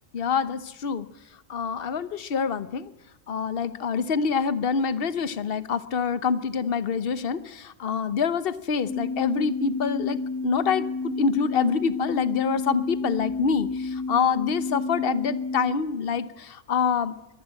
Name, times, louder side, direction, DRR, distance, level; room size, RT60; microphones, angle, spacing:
voice 1, 0.1-1.1 1.5-2.9 3.3-17.1, left 6 dB, 45° left, 14 dB, 1.1 m, -26 dB
sound 1, 8.8-15.7, left 3 dB, 5° left, 3.3 m, -30 dB
22.5 x 18.5 x 7.7 m, 0.95 s
omnidirectional pair, 1.4 m